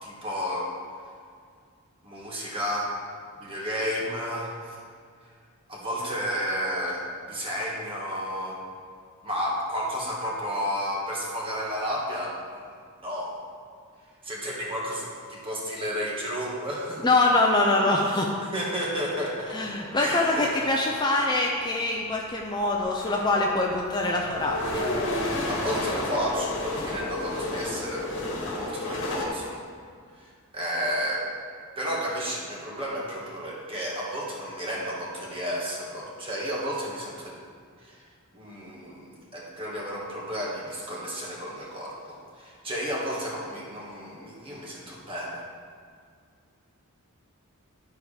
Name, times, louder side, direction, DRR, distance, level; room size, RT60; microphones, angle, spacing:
voice 1, 0.0-0.7 2.0-2.9 3.4-4.8 5.7-8.6 9.2-12.4 13.0-13.3 14.2-17.0 18.1-18.2 18.5-19.6 19.9-20.5 25.5-29.6 30.1-31.3 31.8-37.4 37.8-38.0 38.3-45.4, equal, 25° right, -4 dB, 1.7 m, -32 dB
voice 2, 17.0-18.3 19.5-24.8, left 2 dB, 20° left, -1 dB, 0.6 m, -24 dB
sound 1, 19.2-21.4 22.3-22.4 22.8-29.2, left 1 dB, 55° left, 1.5 m, -32 dB
11.5 x 4.7 x 5.0 m, 2.1 s
head